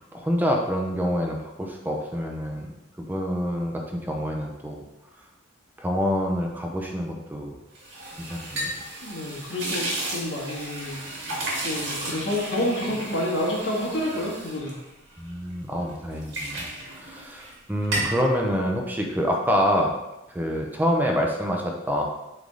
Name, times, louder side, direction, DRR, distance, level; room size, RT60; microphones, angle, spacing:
voice 1, 0.1-2.7 3.0-4.8 5.8-7.5 8.3-8.7 15.2-16.6 16.9-20.0 20.3-22.0, equal, 10° right, 1 dB, 0.7 m, -26 dB
sound 1, 7.7-15.5 15.9-17.6 17.8-18.2, right 1 dB, 80° right, 2.1 m, -33 dB
voice 2, 9.0-11.0 11.6-14.7, left 1 dB, 85° left, -3 dB, 1.8 m, -28 dB
8.2 x 3.6 x 3.9 m, 0.94 s
head